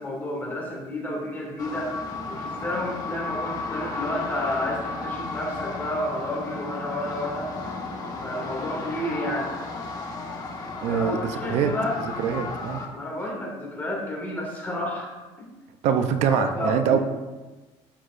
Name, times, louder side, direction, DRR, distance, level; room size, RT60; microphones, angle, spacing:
voice 1, 0.0-1.9 2.3-7.5 8.2-9.5 10.9-12.0 12.9-15.1 15.4-15.5 16.3-17.0, left 1 dB, 15° left, -3 dB, 2.5 m, -31 dB
sound 1, 1.6-12.9, left 3 dB, 35° left, 1.2 m, -34 dB
voice 2, 10.8-11.2 11.5-11.7 12.2-12.8 15.8-17.0, right 7 dB, 80° right, 7 dB, 0.8 m, -23 dB
11.5 x 8.1 x 2.6 m, 1.2 s
cardioid pair, 160°, 11 cm